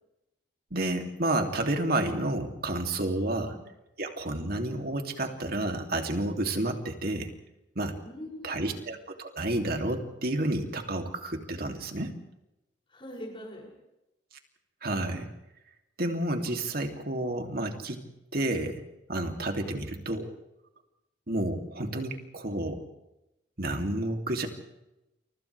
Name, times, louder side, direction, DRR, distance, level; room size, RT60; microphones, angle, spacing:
voice 1, 0.7-3.6 4.0-7.3 7.7-7.9 8.4-12.1 14.8-15.3 16.0-18.0 18.3-18.8 19.1-20.3 21.3-22.8 23.6-24.5, right 1 dB, 50° right, 4 dB, 3.0 m, -30 dB
voice 2, 8.0-8.9 12.9-13.7, equal, 30° left, 0 dB, 7.0 m, -43 dB
29.5 x 29.5 x 3.5 m, 0.92 s
head